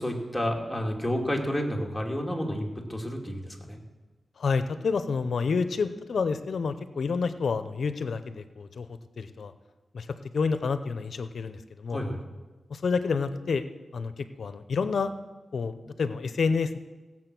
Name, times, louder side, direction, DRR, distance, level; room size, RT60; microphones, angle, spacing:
voice 1, 0.0-3.8 11.9-12.2, equal, 5° left, 0 dB, 2.3 m, -30 dB
voice 2, 4.4-9.5 9.9-10.1 10.3-12.0 12.7-13.6 13.9-15.1 15.5-16.8, left 5 dB, 70° left, 11 dB, 0.8 m, -29 dB
17.0 x 7.5 x 6.1 m, 1.2 s
cardioid pair, 75°, 0 cm